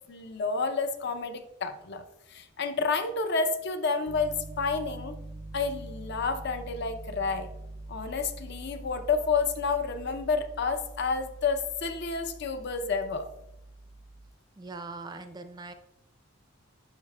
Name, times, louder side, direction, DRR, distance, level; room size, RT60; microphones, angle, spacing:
voice 1, 0.1-5.2 5.5-7.5 7.9-13.3, left 4 dB, 50° left, 10 dB, 0.5 m, -30 dB
Piano, 4.1-14.3, right 2 dB, 85° right, 0.6 m, -44 dB
voice 2, 14.6-15.7, right 3 dB, 20° right, 8 dB, 0.4 m, -41 dB
8.9 x 4.8 x 2.2 m, 0.87 s
head